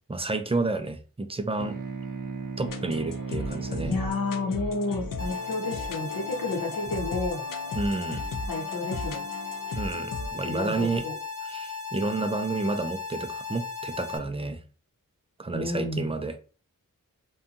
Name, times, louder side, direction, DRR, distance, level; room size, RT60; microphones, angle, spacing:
voice 1, 0.1-1.8 2.6-3.9 7.7-8.2 9.7-11.0 11.5-14.6 15.4-16.3, right 3 dB, 20° right, 8 dB, 0.3 m, -30 dB
sound 1, 1.6-6.4, right 5 dB, 65° right, 0.6 m, -38 dB
sound 2, 2.7-10.3, left 3 dB, 70° left, 0.5 m, -36 dB
voice 2, 3.8-7.5 8.5-9.2 10.4-11.2 15.5-16.1, left 3 dB, 90° left, 0 dB, 0.9 m, -31 dB
sound 3, 5.2-14.2, left 5 dB, 40° left, 0.9 m, -36 dB
2.6 x 2.3 x 2.6 m, 0.37 s
wide cardioid pair, 65°, 34 cm